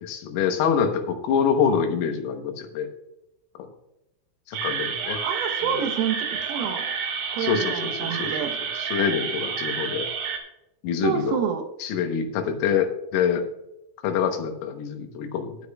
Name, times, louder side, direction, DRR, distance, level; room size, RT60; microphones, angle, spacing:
voice 1, 0.0-2.9 3.6-3.7 4.5-5.2 5.6-5.8 7.4-8.3 8.8-10.1 10.8-11.4 11.8-13.5 14.0-15.6, left 7 dB, 85° left, 5 dB, 3.8 m, -25 dB
sound 1, 4.5-10.4, right 6 dB, 70° right, 3.5 m, -29 dB
voice 2, 5.2-6.9 7.3-8.6 11.0-11.6, right 7 dB, 85° right, 6 dB, 3.8 m, -28 dB
17.5 x 8.5 x 2.3 m, 0.87 s
omnidirectional pair, 5.9 m